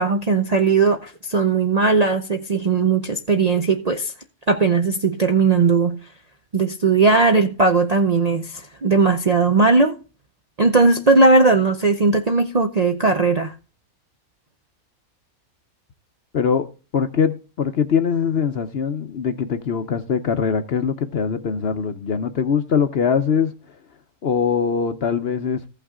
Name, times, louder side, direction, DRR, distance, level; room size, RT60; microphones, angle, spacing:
voice 1, 0.0-4.1 4.5-6.0 6.5-10.0 10.6-13.5, right 4 dB, 45° right, 0.5 m, -18 dB
voice 2, 16.3-16.7 16.9-23.5 24.2-25.7, left 6 dB, 55° left, 0.8 m, -22 dB
15.5 x 5.7 x 3.6 m
omnidirectional pair, 1.5 m